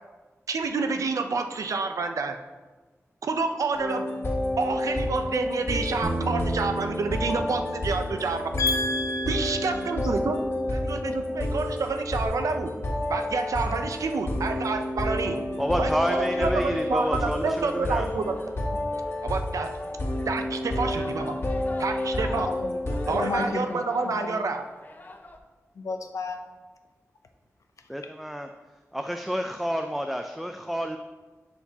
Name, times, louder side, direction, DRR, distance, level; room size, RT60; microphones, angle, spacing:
voice 1, 0.5-2.4 3.2-4.0 4.6-8.5 9.3-10.4 10.7-12.7 13.1-15.4 15.8-18.4 19.2-19.7 20.3-21.4 21.8-22.5 23.1-24.6, right 4 dB, 90° right, 7 dB, 0.5 m, -28 dB
sound 1, 3.7-23.5, left 1 dB, 50° left, 1.5 m, -30 dB
Bass guitar, 6.0-10.8 11.1-12.3, right 1 dB, 60° right, 1.5 m, -37 dB
voice 2, 8.6-10.0 22.3-24.4 25.8-26.4, left 3 dB, 80° left, 5 dB, 0.7 m, -31 dB
sound 2, 15.6-25.4, left 2 dB, 35° left, 0.7 m, -46 dB
voice 3, 15.6-18.1 23.1-23.3 27.9-28.5 28.9-31.0, equal, 5° right, 5 dB, 0.4 m, -29 dB
11.0 x 4.4 x 2.8 m, 1.3 s
wide cardioid pair, 70°, 5 cm